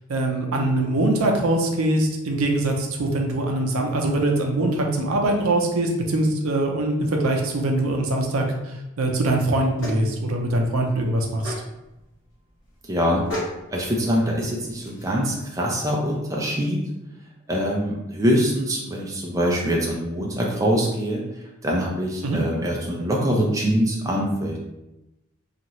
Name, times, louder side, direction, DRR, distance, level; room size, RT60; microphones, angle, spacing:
voice 1, 0.1-11.5 22.2-22.4, right 1 dB, 85° right, 2 dB, 0.5 m, -23 dB
sound 1, 9.7-15.3, left 1 dB, 65° left, 1.0 m, -37 dB
voice 2, 12.9-13.3 13.7-16.8 17.5-21.2 21.6-24.6, equal, 15° right, -2 dB, 0.4 m, -24 dB
2.7 x 2.4 x 3.0 m, 0.93 s
head